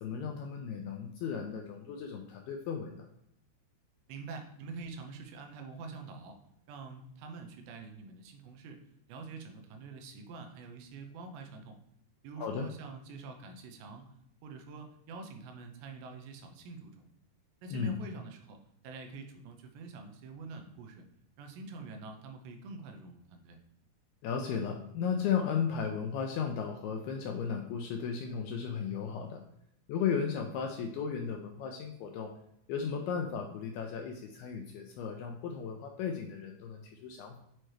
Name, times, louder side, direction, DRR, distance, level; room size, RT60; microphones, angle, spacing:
voice 1, 0.0-3.1 12.4-12.7 17.7-18.0 24.2-29.4 29.9-32.3 32.7-37.4, left 6 dB, 85° left, 3 dB, 2.3 m, -35 dB
voice 2, 4.1-6.4 6.7-8.8 9.1-11.8 12.2-14.1 14.4-17.1 17.6-18.6 18.8-21.0 21.4-23.6, right 4 dB, 85° right, 4 dB, 3.0 m, -46 dB
7.6 x 4.4 x 3.2 m, 0.77 s
omnidirectional pair, 5.0 m